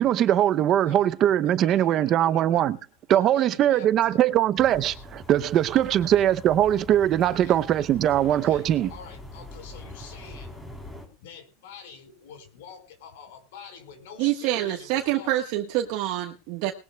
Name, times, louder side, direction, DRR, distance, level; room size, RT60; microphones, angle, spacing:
voice 1, 0.0-2.8 3.1-8.9, right 11 dB, 30° right, 0.6 m, -21 dB
voice 2, 0.8-2.6 3.1-4.2 5.7-5.8 7.3-7.6 8.3-10.8 11.2-15.4, left 6 dB, 75° left, 4.5 m, -46 dB
sound 1, 4.6-11.1, left 1 dB, 10° left, 3.5 m, -43 dB
voice 3, 14.2-16.7, right 14 dB, 50° right, 1.3 m, -26 dB
20.5 x 15.5 x 2.3 m
supercardioid pair, 165°, 0 cm